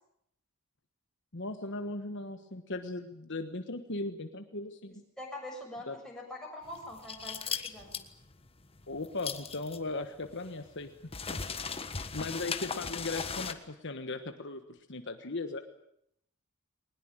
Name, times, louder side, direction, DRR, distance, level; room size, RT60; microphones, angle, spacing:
voice 1, 1.3-5.0 5.9-6.0 8.9-10.9 11.3-11.4 12.1-15.6, left 2 dB, 55° left, 7 dB, 1.4 m, -38 dB
voice 2, 5.2-8.0, left 1 dB, 5° left, -1 dB, 7.0 m, -44 dB
sound 1, 6.7-13.5, left 5 dB, 25° left, 1.4 m, -38 dB
21.5 x 20.0 x 9.0 m, 0.73 s
head